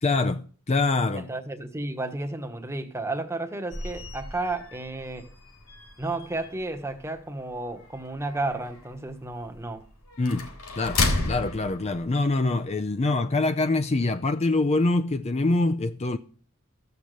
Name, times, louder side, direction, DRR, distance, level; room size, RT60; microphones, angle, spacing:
voice 1, 0.0-1.3 10.2-10.5 10.8-16.2, left 2 dB, 30° left, 0.5 m, -25 dB
voice 2, 1.1-5.3 6.0-9.9, right 2 dB, 15° right, 1.1 m, -32 dB
sound 1, 3.7-12.7, left 3 dB, 80° left, 3.5 m, -34 dB
14.5 x 6.7 x 7.6 m
head